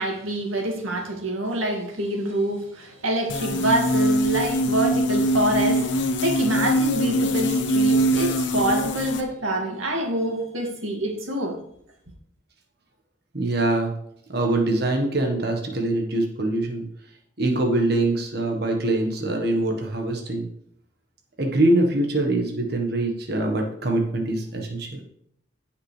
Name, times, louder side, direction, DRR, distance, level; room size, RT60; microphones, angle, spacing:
voice 1, 0.0-11.6, right 1 dB, 90° right, 0 dB, 2.3 m, -26 dB
sound 1, 3.3-9.2, equal, 65° left, 1.0 m, -23 dB
voice 2, 13.3-13.9 14.3-16.8 17.4-20.5 21.4-25.1, right 2 dB, 50° right, 2 dB, 1.4 m, -23 dB
16.5 x 5.8 x 3.3 m, 0.70 s
head